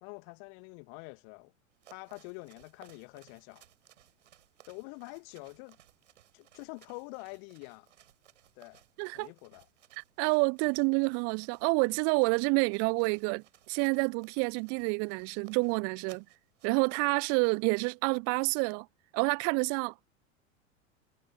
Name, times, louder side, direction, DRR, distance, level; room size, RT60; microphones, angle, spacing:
voice 1, 0.0-1.5 1.9-3.7 4.7-5.8 6.3-7.9 8.6-8.8 9.1-9.7, left 40 dB or more, 45° left, 2.0 m, -46 dB
sound 1, 1.7-17.7, right 12 dB, 60° right, 7.9 m, -62 dB
voice 2, 10.0-16.2 16.6-18.9 19.1-20.1, right 35 dB, 40° right, 1.0 m, -28 dB
figure-of-eight pair, 90°, 40 cm